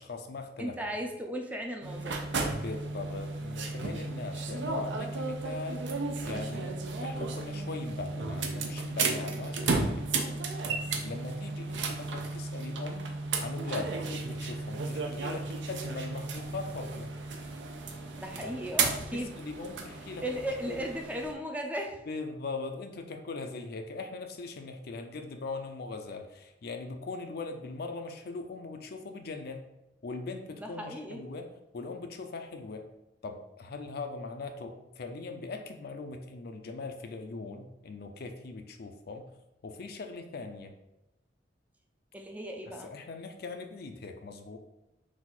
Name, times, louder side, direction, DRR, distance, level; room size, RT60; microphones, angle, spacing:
voice 1, 0.0-0.7 2.5-5.8 6.2-10.3 11.0-13.1 13.4-17.1 18.4-18.6 19.1-20.2 20.7-20.8 22.1-29.7 30.0-32.9 33.2-39.3 39.6-40.7 42.7-44.6, left 3 dB, 60° left, 6 dB, 0.4 m, -40 dB
voice 2, 0.6-2.3 18.2-19.3 20.2-22.0 30.6-31.2 42.1-42.9, equal, 10° right, 2 dB, 0.4 m, -36 dB
sound 1, 1.8-21.3, right 3 dB, 75° right, 0.5 m, -34 dB
4.0 x 2.4 x 4.3 m, 0.93 s
head